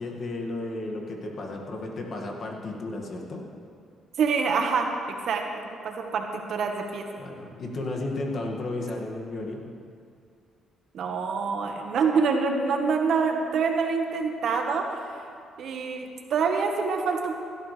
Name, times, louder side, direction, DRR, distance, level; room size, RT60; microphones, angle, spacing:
voice 1, 0.0-3.4 7.2-9.7, left 2 dB, 50° left, 0 dB, 2.0 m, -33 dB
voice 2, 4.2-4.9 5.3-7.0 10.9-15.1 15.6-17.4, right 5 dB, 70° right, 3 dB, 1.4 m, -26 dB
16.5 x 12.5 x 3.4 m, 2.3 s
cardioid pair, 90°, 0 cm